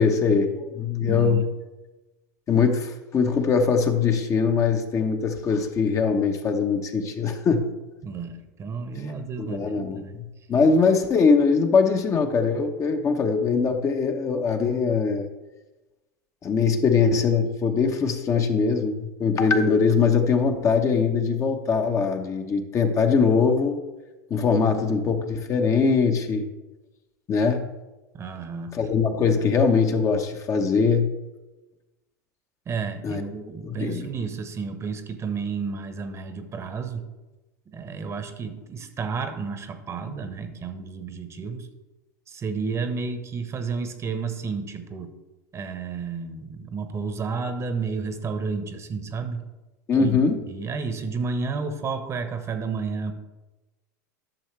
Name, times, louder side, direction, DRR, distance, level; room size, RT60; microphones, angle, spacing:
voice 1, 0.0-1.4 2.5-7.7 8.9-9.1 9.4-15.3 16.4-23.8 24.3-26.4 27.3-27.7 28.7-31.1 33.0-33.2 33.6-34.1 49.9-50.4, left 5 dB, 30° left, 5 dB, 1.0 m, -22 dB
voice 2, 1.0-1.5 8.0-10.2 28.1-28.7 32.7-37.0 37.7-41.7 42.3-45.1 45.5-49.4 50.0-50.2 50.5-53.1, right 5 dB, 30° right, 8 dB, 1.0 m, -31 dB
12.0 x 6.4 x 3.2 m, 1.1 s
hypercardioid pair, 90°, 9 cm